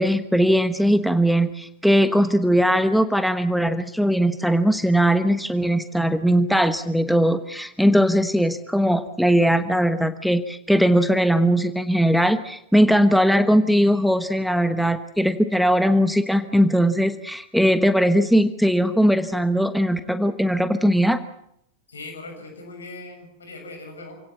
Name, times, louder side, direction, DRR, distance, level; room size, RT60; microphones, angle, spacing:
voice 1, 0.0-21.2, equal, ahead, 11 dB, 1.2 m, -19 dB
voice 2, 21.9-24.2, left 2 dB, 70° left, 4 dB, 7.2 m, -39 dB
28.0 x 17.5 x 7.2 m, 0.75 s
figure-of-eight pair, 90°, 0 cm